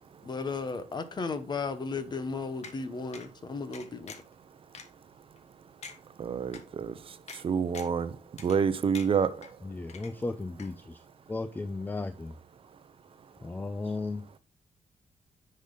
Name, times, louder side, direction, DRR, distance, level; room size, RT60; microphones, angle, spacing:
voice 1, 0.2-4.1, left 4 dB, 35° left, 1.1 m, -35 dB
sound 1, 2.6-2.8 3.1-3.3 3.7-4.3 4.7-4.9 5.4-5.5 5.8-6.0 6.5-6.6 7.3-7.4 7.7-8.0 8.4-8.7 8.9-9.5 9.9-10.3 10.6-10.7, left 5 dB, 65° left, 1.5 m, -45 dB
voice 2, 6.2-6.9 7.4-8.1 8.4-9.4, right 6 dB, 50° right, 0.7 m, -27 dB
voice 3, 9.6-12.4 13.4-14.2, left 3 dB, 15° left, 0.5 m, -35 dB
10.0 x 5.5 x 3.9 m
cardioid pair, 130°, 12 cm